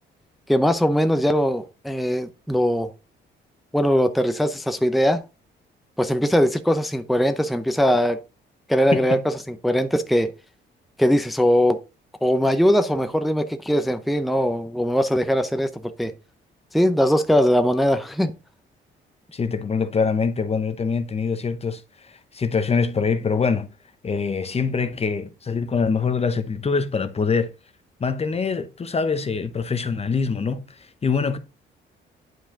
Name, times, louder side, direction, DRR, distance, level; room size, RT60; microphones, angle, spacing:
voice 1, 0.5-2.9 3.7-5.2 6.0-8.2 8.7-10.3 11.0-11.8 12.2-15.7 16.0-16.1 16.7-18.3, equal, ahead, 0.7 m, -20 dB
voice 2, 19.3-23.7 24.0-27.5 28.0-31.4, left 5 dB, 30° left, 0.8 m, -24 dB
9.3 x 5.0 x 3.8 m
cardioid pair, 90°, 20 cm